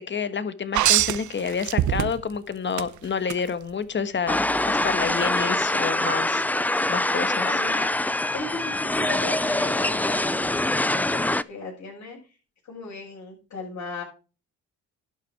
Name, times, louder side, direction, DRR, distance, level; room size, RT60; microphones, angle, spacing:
voice 1, 0.0-6.4 6.9-7.5, left 6 dB, 40° left, 13 dB, 1.4 m, -29 dB
sound 1, 0.7-2.4 2.8-3.4 5.0-5.1, right 13 dB, 75° right, 0.9 m, -23 dB
sound 2, 4.3-11.4, left 1 dB, 5° left, 0.4 m, -24 dB
voice 2, 7.4-7.9 8.3-11.2 11.5-12.2 12.7-14.0, left 3 dB, 65° left, -5 dB, 6.7 m, -36 dB
12.0 x 8.9 x 4.6 m, 0.34 s
cardioid pair, 90°, 30 cm